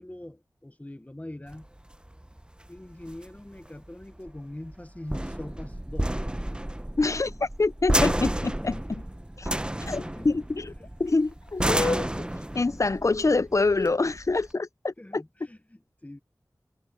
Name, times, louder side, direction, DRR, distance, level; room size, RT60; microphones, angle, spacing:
voice 1, 0.0-1.7 2.7-6.2 10.0-10.4 15.0-16.2, left 1 dB, 20° left, 0.9 m, -42 dB
sound 1, 1.5-14.5, right 1 dB, 15° right, 0.8 m, -31 dB
voice 2, 7.0-9.0 9.4-9.5 9.8-10.7 11.0-12.1 12.5-15.2, left 3 dB, 50° left, 0.6 m, -26 dB
wide cardioid pair, 50°, 7 cm